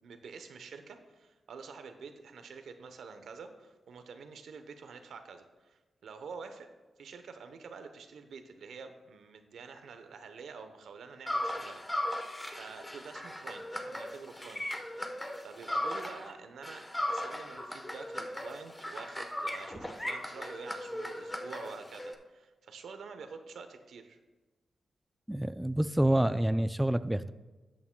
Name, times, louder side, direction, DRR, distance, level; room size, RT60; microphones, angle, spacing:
voice 1, 0.0-6.7 7.0-14.6 14.9-15.2 15.4-24.2, right 5 dB, 85° right, 8 dB, 0.8 m, -48 dB
sound 1, 11.3-16.3 16.6-22.1, left 1 dB, 15° left, 1.0 m, -37 dB
voice 2, 25.3-27.3, right 1 dB, 5° right, 13 dB, 0.3 m, -27 dB
13.0 x 8.5 x 2.2 m, 1.2 s
cardioid pair, 70°, 0 cm